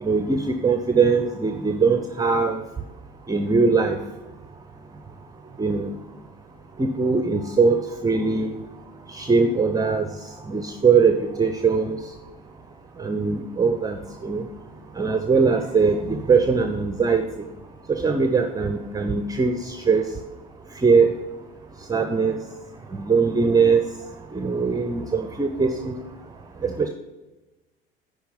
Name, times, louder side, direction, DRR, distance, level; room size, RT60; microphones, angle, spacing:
voice 1, 0.0-2.6 3.3-4.0 5.6-5.9 6.8-8.6 9.1-10.1 10.5-12.0 13.0-14.4 15.0-17.2 17.9-20.0 20.8-21.1 21.9-22.4 22.9-23.8 24.3-26.0 26.6-26.9, right 5 dB, 10° right, 6 dB, 0.6 m, -21 dB
10.5 x 4.7 x 5.5 m, 1.1 s
figure-of-eight pair, 65°, 30 cm